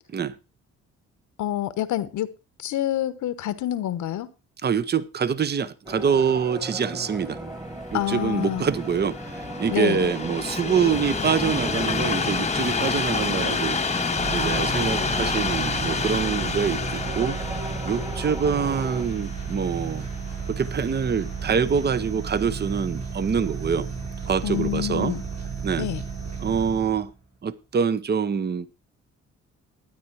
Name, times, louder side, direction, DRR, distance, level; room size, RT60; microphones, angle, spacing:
voice 1, 1.4-2.3 2.6-4.3 7.9-8.7 9.7-10.1 24.4-25.2 25.8-26.0, left 13 dB, 75° left, 1.1 m, -27 dB
voice 2, 4.6-7.4 7.9-13.8 14.3-17.4 17.8-20.1 20.5-23.9 24.3-25.1 25.6-25.9 26.4-27.1 27.4-28.7, right 6 dB, 35° right, 0.8 m, -25 dB
sound 1, 5.9-19.1, right 1 dB, 15° right, 1.7 m, -36 dB
Train, 7.6-20.8 21.5-21.6, left 5 dB, 20° left, 0.9 m, -29 dB
sound 2, 14.1-27.1, right 5 dB, 60° right, 6.7 m, -33 dB
12.0 x 9.6 x 4.7 m
cardioid pair, 90°, 30 cm